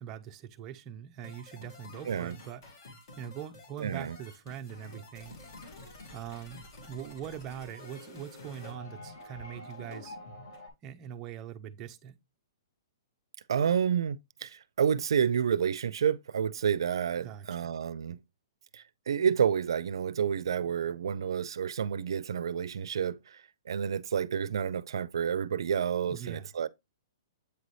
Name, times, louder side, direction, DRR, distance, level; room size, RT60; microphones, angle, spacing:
voice 1, 0.0-2.6 3.2-5.4 6.1-10.2 10.8-12.2 17.2-17.7 26.1-26.5, right 9 dB, 15° right, 0.5 m, -42 dB
sound 1, 1.2-10.7, left 2 dB, 45° left, 2.1 m, -48 dB
voice 2, 3.8-4.2 13.5-18.2 18.7-26.7, right 7 dB, 75° right, 0.4 m, -29 dB
8.2 x 4.0 x 3.2 m
hypercardioid pair, 175°, 2 cm